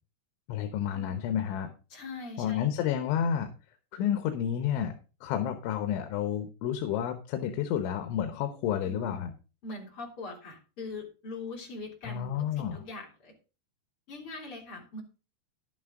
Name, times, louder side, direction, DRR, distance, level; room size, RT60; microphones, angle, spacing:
voice 1, 0.5-1.7 2.4-3.5 3.9-4.9 5.2-9.3 12.0-12.8, left 9 dB, 90° left, 7 dB, 3.5 m, -30 dB
voice 2, 1.9-2.7 8.8-9.1 9.6-12.3 12.6-13.3 14.1-15.0, left 2 dB, 35° left, 0 dB, 3.5 m, -41 dB
11.5 x 9.5 x 3.8 m, 0.33 s
omnidirectional pair, 5.2 m